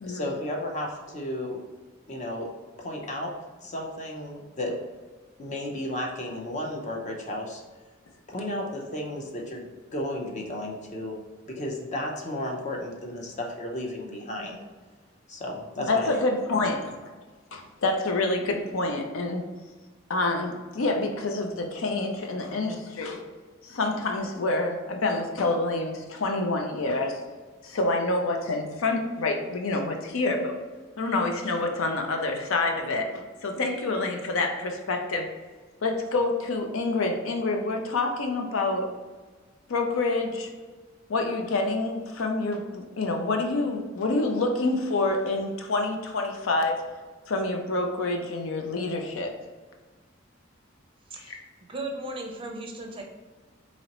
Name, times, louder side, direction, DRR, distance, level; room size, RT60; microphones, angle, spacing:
voice 1, 0.0-1.6 2.1-2.5 2.8-3.3 3.6-4.7 5.4-7.6 8.3-11.2 11.5-14.6 15.3-16.1, left 1 dB, 35° left, 0 dB, 0.6 m, -33 dB
voice 2, 15.8-16.9 17.5-19.4 20.1-23.2 23.6-27.2 27.6-30.6 31.0-35.3 35.8-38.9 39.7-40.5 41.1-46.8 47.3-49.3 51.2-51.4, left 2 dB, 80° left, 4 dB, 0.5 m, -27 dB
voice 3, 51.7-53.0, right 2 dB, 25° right, 1 dB, 0.5 m, -36 dB
4.2 x 2.9 x 2.9 m, 1.3 s
head